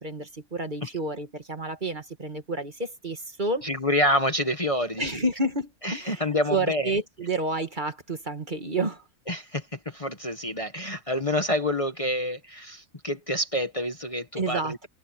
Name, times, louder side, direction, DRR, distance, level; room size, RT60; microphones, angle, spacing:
voice 1, 0.0-3.7 5.0-9.1 14.3-14.9, right 2 dB, 35° right, 1.9 m, -30 dB
voice 2, 3.6-5.1 5.8-6.9 9.3-14.9, left 1 dB, 25° left, 1.5 m, -27 dB
omnidirectional pair, 1.5 m